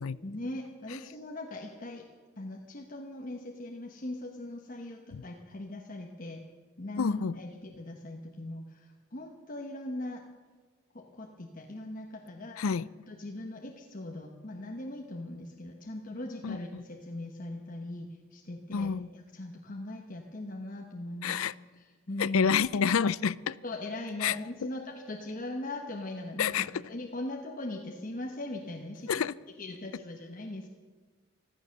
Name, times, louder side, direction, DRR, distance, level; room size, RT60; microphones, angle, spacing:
voice 1, 0.2-2.0 2.4-6.4 6.8-10.2 10.9-12.7 13.1-21.4 21.8-22.5 23.6-29.3 29.6-30.7, left 1 dB, 40° left, 1.1 m, -40 dB
voice 2, 7.0-7.3 12.6-12.9 16.4-16.8 18.7-19.1 21.2-21.5 22.2-23.6 24.2-24.4 24.6-24.7 26.4-26.7 29.1-29.3, left 6 dB, 85° left, 0.5 m, -28 dB
14.5 x 14.0 x 6.5 m
head